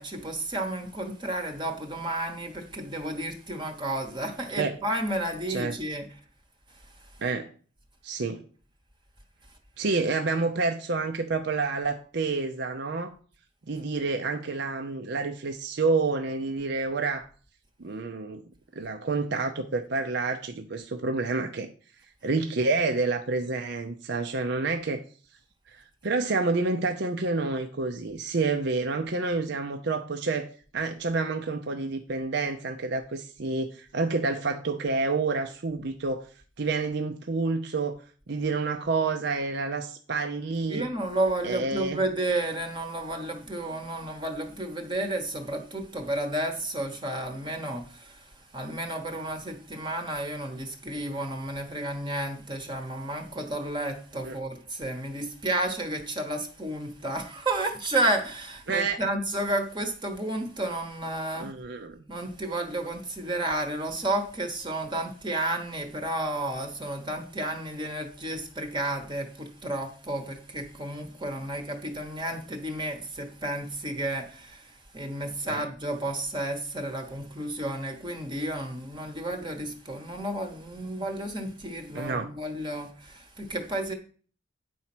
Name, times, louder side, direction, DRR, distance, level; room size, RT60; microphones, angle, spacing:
voice 1, 0.0-6.0 40.7-47.8 48.5-61.5 62.1-74.6 74.9-83.9, right 1 dB, 25° right, 1.1 m, -31 dB
voice 2, 5.5-5.8 7.2-7.5 8.0-8.4 9.8-13.1 13.7-17.3 17.8-18.4 18.8-21.7 22.2-25.0 25.7-30.5 30.7-36.2 36.6-38.0 38.3-40.9 41.4-42.0 54.2-54.4 58.7-59.0 61.4-62.0 75.4-75.7 81.9-82.3, right 3 dB, 65° right, 0.7 m, -28 dB
9.3 x 4.3 x 6.0 m
head